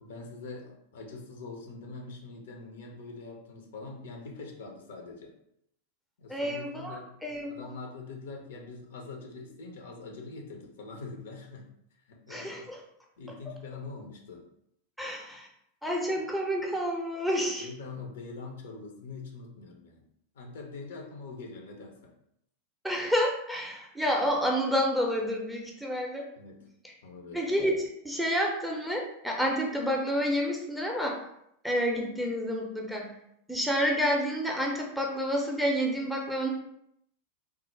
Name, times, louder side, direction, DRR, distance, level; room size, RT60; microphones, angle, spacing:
voice 1, 0.0-5.3 6.2-7.1 7.5-11.7 12.1-12.7 13.2-14.5 17.6-20.0 20.3-22.1 26.4-26.6 27.0-27.4, left 3 dB, 60° left, 1 dB, 0.6 m, -43 dB
voice 2, 6.3-7.5 12.3-12.8 15.0-15.5 15.8-17.7 22.8-26.3 26.8-26.9 27.3-31.2 31.6-33.1 33.5-36.5, equal, ahead, -1 dB, 0.6 m, -29 dB
3.2 x 2.0 x 3.2 m, 0.75 s
figure-of-eight pair, 90°, 0 cm